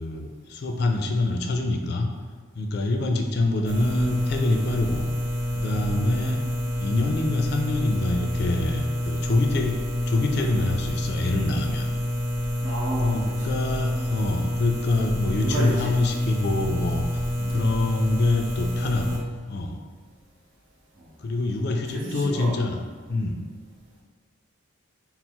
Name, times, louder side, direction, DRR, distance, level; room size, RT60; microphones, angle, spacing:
voice 1, 0.0-2.1 2.6-5.0 5.5-6.4 6.8-9.8 10.1-11.9 13.0-17.2 17.5-19.8 21.2-22.8 23.1-23.4, left 2 dB, 50° left, 3 dB, 0.4 m, -25 dB
sound 1, 3.7-19.2, equal, 60° right, 0.6 m, -27 dB
voice 2, 12.6-13.4 15.4-16.0 17.4-18.0 21.7-22.6, right 1 dB, 75° right, -5 dB, 1.1 m, -33 dB
4.4 x 2.0 x 4.2 m, 1.5 s
head